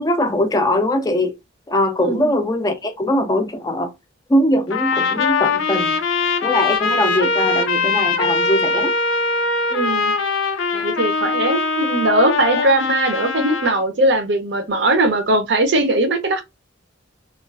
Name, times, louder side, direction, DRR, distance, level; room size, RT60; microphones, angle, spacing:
voice 1, 0.0-1.3 1.7-3.9 4.3-6.0 6.4-8.9, left 1 dB, 20° left, 0.4 m, -21 dB
voice 2, 2.0-2.3 9.7-10.1 10.7-16.4, right 1 dB, 60° right, 0.6 m, -19 dB
Trumpet, 4.7-13.8, left 4 dB, 85° left, 0.5 m, -21 dB
2.4 x 2.3 x 2.2 m
head